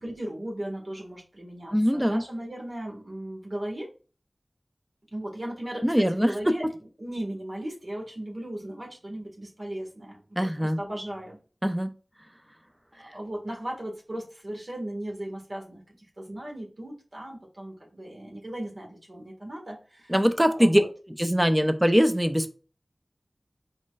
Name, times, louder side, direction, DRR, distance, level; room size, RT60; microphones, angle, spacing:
voice 1, 0.0-3.9 5.1-6.6 7.0-11.4 13.0-15.8 16.2-20.1 20.5-20.9, right 1 dB, 60° right, -1 dB, 1.8 m, -37 dB
voice 2, 1.7-2.2 5.8-6.5 10.4-10.8 11.6-11.9 20.1-20.8 21.2-22.5, equal, 10° right, 9 dB, 0.6 m, -22 dB
4.3 x 4.1 x 2.5 m, 0.35 s
wide cardioid pair, 50°, 0 cm